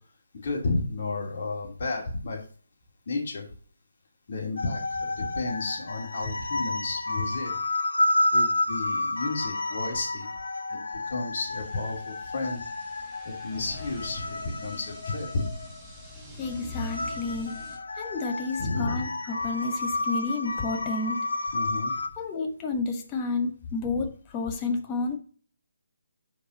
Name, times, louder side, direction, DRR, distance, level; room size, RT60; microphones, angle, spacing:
voice 1, 0.3-2.4 3.1-3.5 4.3-7.6 8.3-10.3 10.7-12.6 13.2-15.5 18.6-19.0 21.5-21.9, left 3 dB, 55° left, 2.7 m, -32 dB
sound 1, 4.6-22.1, left 2 dB, 80° left, 1.0 m, -31 dB
sound 2, 11.4-17.8, left 1 dB, 5° right, 1.3 m, -45 dB
voice 2, 16.4-17.6 18.0-21.3 22.2-25.2, left 3 dB, 20° left, 1.1 m, -31 dB
5.3 x 4.8 x 6.3 m
figure-of-eight pair, 155°, 0 cm